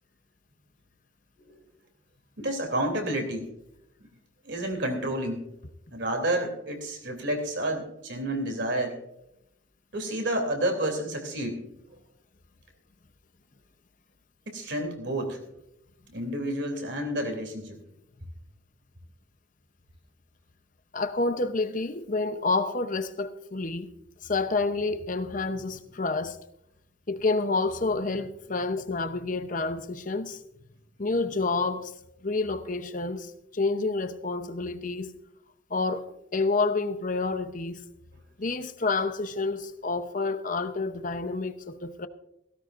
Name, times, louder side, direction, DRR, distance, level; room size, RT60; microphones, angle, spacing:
voice 1, 2.4-3.5 4.4-5.4 5.9-9.0 9.9-11.6 14.5-15.4 16.1-17.8, right 1 dB, 60° right, 3.0 m, -30 dB
voice 2, 20.9-23.9 24.2-26.4 27.1-30.4 31.0-31.9 32.2-35.1 35.7-36.1 36.3-37.8 38.4-42.1, left 3 dB, 40° left, 0.8 m, -29 dB
17.0 x 16.5 x 2.6 m
head